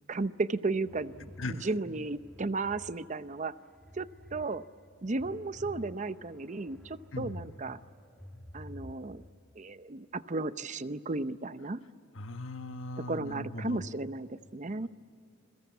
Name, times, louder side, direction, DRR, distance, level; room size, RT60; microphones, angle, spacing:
voice 1, 0.1-3.6 3.9-4.6 5.0-7.8 8.5-9.2 9.6-11.8 13.0-14.9, right 3 dB, 40° right, 13 dB, 0.7 m, -34 dB
sound 1, 0.9-2.9 3.4-4.5 4.8-7.5 7.8-9.3, left 1 dB, 5° left, 2.1 m, -51 dB
voice 2, 1.4-1.7 7.1-7.5 12.1-13.8, left 2 dB, 90° left, 8 dB, 1.3 m, -39 dB
29.5 x 22.0 x 8.2 m, 2.4 s
head